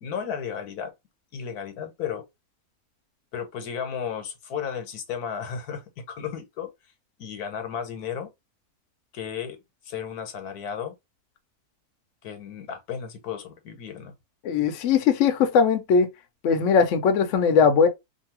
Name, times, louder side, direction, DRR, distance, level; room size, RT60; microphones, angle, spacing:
voice 1, 0.0-0.9 1.3-2.2 3.3-6.7 7.2-8.3 9.1-9.6 9.9-10.9 12.2-14.1, left 7 dB, 85° left, 1.3 m, -34 dB
voice 2, 14.4-16.1 16.4-17.9, left 6 dB, 65° left, 0.9 m, -20 dB
2.7 x 2.6 x 2.9 m
omnidirectional pair, 1.6 m